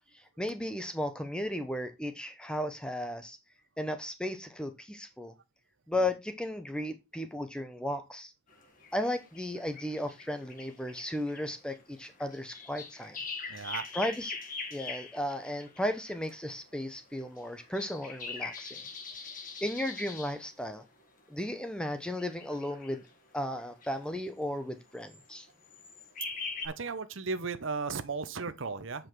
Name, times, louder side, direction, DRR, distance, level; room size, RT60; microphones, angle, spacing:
voice 1, 0.1-3.4 3.8-5.3 5.9-8.3 8.9-13.2 13.9-14.4 14.7-18.8 19.6-20.8 21.3-23.0 23.3-25.5, left 1 dB, 5° left, 0.8 m, -35 dB
sound 1, 8.5-16.3 17.2-20.4 21.8-23.1 23.5-23.9 25.0-25.3 25.6-26.7, left 4 dB, 40° left, 1.6 m, -42 dB
voice 2, 13.5-13.9 26.6-29.1, right 4 dB, 70° right, 0.8 m, -35 dB
7.9 x 5.1 x 4.6 m
head